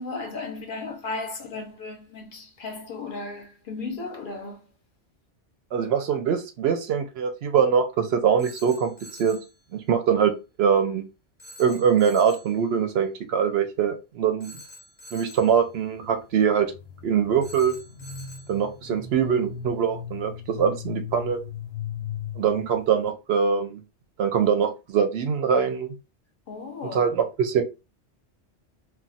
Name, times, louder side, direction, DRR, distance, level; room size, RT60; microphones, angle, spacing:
voice 1, 0.0-4.6 26.5-27.1, left 3 dB, 55° left, 0.7 m, -35 dB
voice 2, 5.7-8.9 9.2-9.4 9.7-11.0 11.6-14.6 15.1-16.7 17.0-17.8 18.5-21.4 22.4-23.8 24.2-25.9 26.9-27.6, right 7 dB, 70° right, 0.7 m, -23 dB
Telephone, 8.4-9.5 11.4-12.6 14.4-15.6 17.4-18.6, equal, 10° right, 0.9 m, -46 dB
sound 1, 15.4-23.1, left 7 dB, 80° left, 0.9 m, -38 dB
2.3 x 2.2 x 3.9 m
omnidirectional pair, 1.2 m